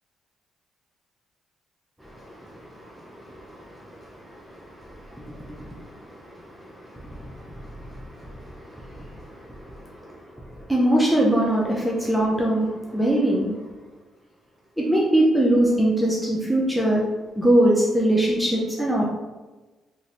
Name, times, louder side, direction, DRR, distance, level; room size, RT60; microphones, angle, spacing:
voice 1, 2.0-10.2 10.5-13.5 14.8-17.0 17.4-19.1, right 1 dB, 5° right, -4 dB, 0.5 m, -24 dB
2.6 x 2.6 x 3.1 m, 1.2 s
cardioid pair, 90°, 0 cm